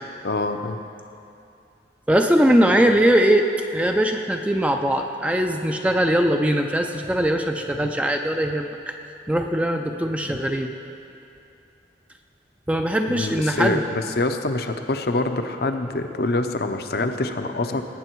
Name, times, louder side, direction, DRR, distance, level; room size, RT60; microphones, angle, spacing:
voice 1, 0.2-0.8 7.8-7.9 13.1-17.8, left 2 dB, 60° left, 7 dB, 0.7 m, -25 dB
voice 2, 2.1-8.9 9.3-10.7 12.7-13.8, right 1 dB, 5° right, 4 dB, 0.4 m, -21 dB
19.0 x 8.7 x 4.6 m, 2.6 s
head